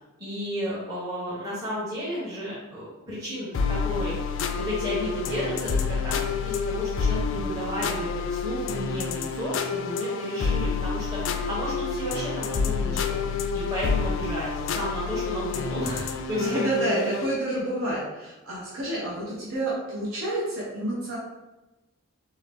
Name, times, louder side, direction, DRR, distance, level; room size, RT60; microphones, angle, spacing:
voice 1, 0.2-4.1 4.6-13.2 13.5-16.7, equal, 15° right, -8 dB, 0.9 m, -33 dB
sound 1, 3.5-17.4, left 5 dB, 60° left, 0.3 m, -28 dB
voice 2, 16.4-21.2, right 1 dB, 80° right, -6 dB, 1.0 m, -29 dB
4.0 x 2.8 x 3.4 m, 1.1 s
head